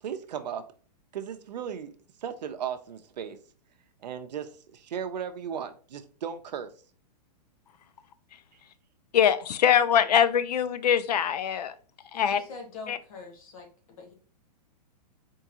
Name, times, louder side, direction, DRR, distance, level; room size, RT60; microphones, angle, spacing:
voice 1, 0.0-0.6 1.1-3.4 4.0-6.7, right 8 dB, 85° right, 0.7 m, -36 dB
voice 2, 9.1-11.7 12.1-12.4 12.9-13.0, left 9 dB, 75° left, 0.6 m, -23 dB
voice 3, 12.1-14.1, left 4 dB, 55° left, 1.7 m, -44 dB
4.5 x 3.7 x 2.8 m
hypercardioid pair, 170°, 21 cm